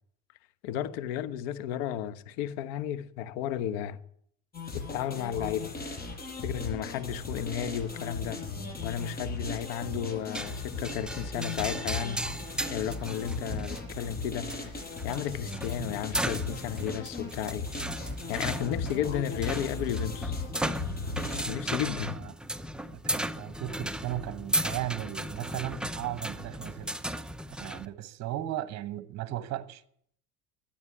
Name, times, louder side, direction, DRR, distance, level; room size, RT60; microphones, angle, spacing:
voice 1, 0.6-4.0 4.7-5.7 6.4-8.4 8.8-12.2 12.7-14.5 15.0-17.7 18.3-20.4 21.4-22.2, left 10 dB, 80° left, 1.2 m, -33 dB
sound 1, 4.5-21.4, left 3 dB, 30° left, 5.9 m, -37 dB
sound 2, 10.3-27.9, right 1 dB, ahead, 0.7 m, -36 dB
voice 2, 22.9-26.9 27.6-29.8, right 14 dB, 50° right, 1.2 m, -36 dB
13.0 x 9.1 x 9.7 m
supercardioid pair, 95°, 33 cm